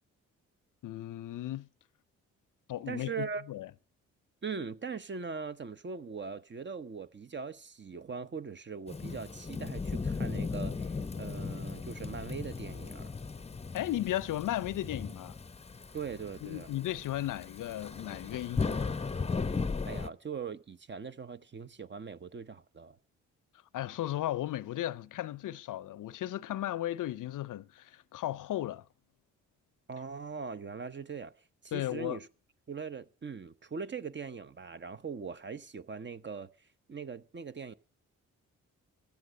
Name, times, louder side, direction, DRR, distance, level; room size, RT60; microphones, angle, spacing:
voice 1, 0.8-1.7 2.7-3.7 13.7-15.4 16.4-18.9 23.7-28.8 31.7-32.2, left 13 dB, 60° left, 0.6 m, -35 dB
voice 2, 2.9-3.4 4.4-13.1 15.9-16.7 19.8-23.0 29.9-31.3 31.6-32.3 32.7-36.5 36.9-37.7, right 5 dB, 30° right, 0.8 m, -41 dB
Thunderstorm / Rain, 8.9-20.1, left 4 dB, 15° left, 0.7 m, -37 dB
15.5 x 10.5 x 6.4 m
hypercardioid pair, 40°, 36 cm